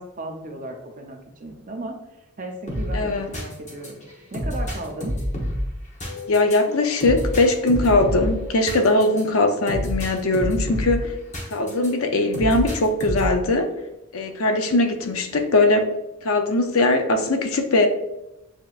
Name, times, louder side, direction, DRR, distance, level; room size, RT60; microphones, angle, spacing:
voice 1, 0.0-1.9 2.4-4.0 4.3-5.1, right 2 dB, 35° right, 2 dB, 0.6 m, -35 dB
sound 1, 2.7-11.9 12.3-13.4, equal, 30° left, 1.0 m, -29 dB
voice 2, 2.9-3.3 6.3-11.1 11.5-13.7 14.1-15.9 16.2-17.9, left 2 dB, 75° left, 6 dB, 0.6 m, -20 dB
7.4 x 2.9 x 2.4 m, 0.91 s
head